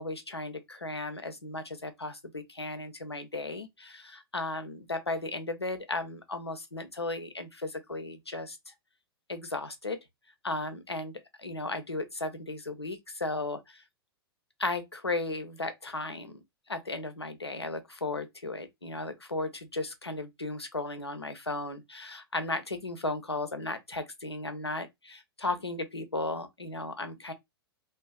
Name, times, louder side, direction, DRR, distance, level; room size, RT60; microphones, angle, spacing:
voice 1, 0.0-8.7 9.3-10.0 10.4-11.1 11.4-13.8 14.6-16.4 16.7-27.3, left 2 dB, 90° left, 0.5 m, -35 dB
2.5 x 2.3 x 2.3 m
figure-of-eight pair, 105°, 13 cm